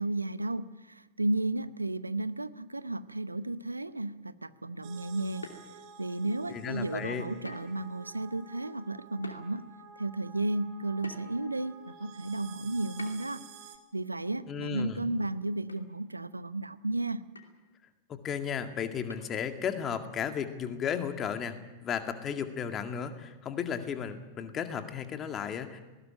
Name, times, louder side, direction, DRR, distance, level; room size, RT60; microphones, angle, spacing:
voice 1, 0.0-5.5 6.0-9.7 10.0-13.4 13.9-17.2, right 2 dB, 85° right, 16 dB, 0.7 m, -33 dB
sound 1, 4.8-13.8, right 5 dB, 45° right, 2.5 m, -51 dB
sound 2, 5.4-6.1 7.4-7.8 8.2-8.3 9.2-9.4 11.0-11.5 13.0-13.4 15.1-15.3 15.7-15.9 16.1-16.2 17.3-17.6 19.1-19.6, left 3 dB, 80° left, 2.7 m, -46 dB
voice 2, 6.5-7.2 14.5-15.0 18.1-21.5 21.8-25.8, left 7 dB, 25° left, 7 dB, 2.1 m, -34 dB
19.5 x 18.5 x 9.0 m, 1.2 s
figure-of-eight pair, 90°, 0 cm